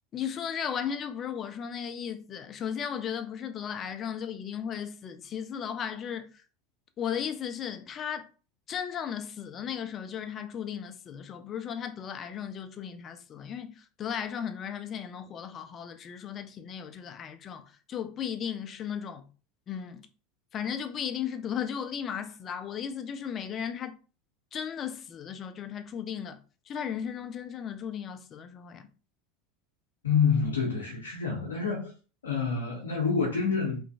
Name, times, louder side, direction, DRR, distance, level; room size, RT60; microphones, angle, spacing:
voice 1, 0.1-6.3 7.0-8.3 8.7-19.3 19.7-20.1 20.5-24.0 24.5-26.4 26.7-28.9, left 8 dB, 40° left, 0.4 m, -35 dB
voice 2, 30.0-31.9 32.2-33.8, left 5 dB, 90° left, 0.6 m, -27 dB
3.0 x 2.5 x 2.3 m
hypercardioid pair, 85°, 0 cm